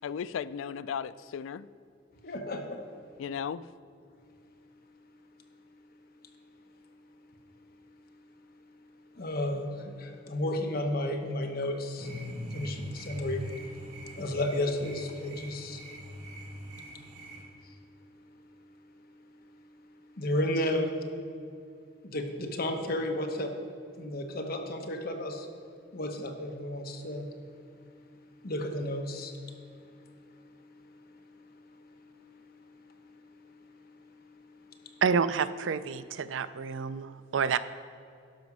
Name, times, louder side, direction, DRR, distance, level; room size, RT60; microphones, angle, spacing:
voice 1, 0.0-1.7 3.2-3.7, left 7 dB, 80° left, 16 dB, 0.3 m, -35 dB
voice 2, 2.2-2.8 9.1-12.1 12.5-15.9 17.6-17.7 20.2-21.0 22.0-23.5 24.0-25.5 25.9-27.3 28.4-29.6 29.8-30.2 30.7-30.8 31.8-32.3 32.8-32.9 33.4-33.5 34.6-34.9, left 1 dB, 50° left, 4 dB, 1.0 m, -33 dB
sound 1, 12.0-17.4, equal, 40° right, 2.5 m, -42 dB
voice 3, 35.0-37.6, right 6 dB, 70° right, 14 dB, 0.4 m, -29 dB
11.5 x 5.2 x 6.1 m, 2.4 s
head